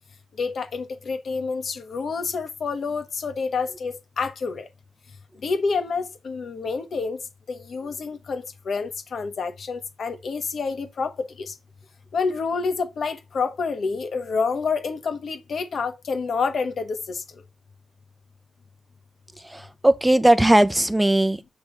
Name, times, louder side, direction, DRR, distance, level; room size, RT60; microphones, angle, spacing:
voice 1, 0.4-4.7 5.4-7.2 7.5-11.5 12.1-17.2, left 4 dB, 65° left, 1.4 m, -28 dB
voice 2, 19.4-21.5, right 1 dB, 10° right, 0.7 m, -19 dB
7.2 x 3.4 x 4.2 m
cardioid pair, 80°, 0 cm